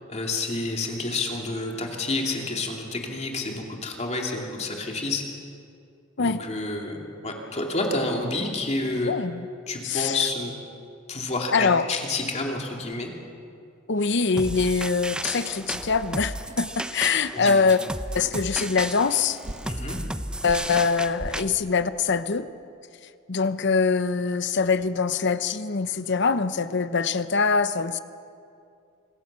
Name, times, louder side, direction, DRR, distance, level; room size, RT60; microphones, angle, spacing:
voice 1, 0.1-5.3 6.2-9.1 9.7-10.5 11.1-13.1 17.3-17.7 19.6-20.0, left 2 dB, 35° left, 1 dB, 2.7 m, -29 dB
sound 1, 8.9-9.1 11.8-12.5 12.9-13.2 13.9-14.3 15.4-15.5 16.5-16.8 18.2-18.4 19.1-19.2 19.4-19.8 20.4-21.7, right 1 dB, 35° right, 1.3 m, -42 dB
voice 2, 9.1-9.5 9.8-10.2 11.5-11.8 13.9-17.8 18.1-19.4 20.4-22.5 23.3-28.0, left 5 dB, 60° left, 12 dB, 0.8 m, -23 dB
sound 2, 14.4-21.4, right 1 dB, 5° right, 0.6 m, -33 dB
25.0 x 15.5 x 7.5 m, 2.4 s
head